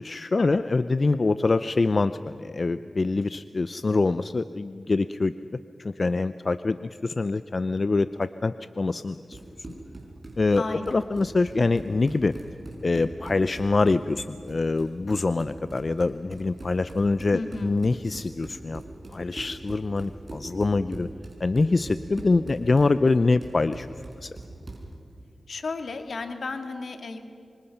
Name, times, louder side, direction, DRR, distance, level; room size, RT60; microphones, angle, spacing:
voice 1, 0.0-5.3 5.8-9.4 10.4-12.3 12.8-18.8 19.1-21.1 21.4-23.9 24.2-24.3, left 3 dB, 50° left, 13 dB, 0.5 m, -25 dB
Run, 9.1-24.9, right 2 dB, 40° right, 6.1 m, -42 dB
voice 2, 10.6-11.1 17.3-17.8 25.5-27.2, left 3 dB, 70° left, 6 dB, 1.9 m, -34 dB
26.0 x 25.5 x 5.8 m, 2.4 s
cardioid pair, 50°, 0 cm